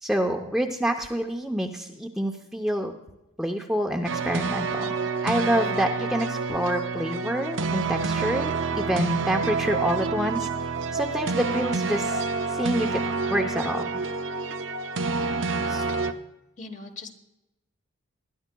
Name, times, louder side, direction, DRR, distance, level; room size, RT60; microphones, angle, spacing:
voice 1, 0.0-2.9 3.4-4.9 5.2-10.5 10.9-13.9 15.7-15.8, equal, ahead, 1 dB, 0.6 m, -27 dB
sound 1, 4.0-16.1, right 4 dB, 60° right, 0.6 m, -28 dB
voice 2, 16.6-17.1, left 3 dB, 35° left, 6 dB, 1.1 m, -41 dB
21.5 x 11.5 x 2.2 m, 0.94 s
head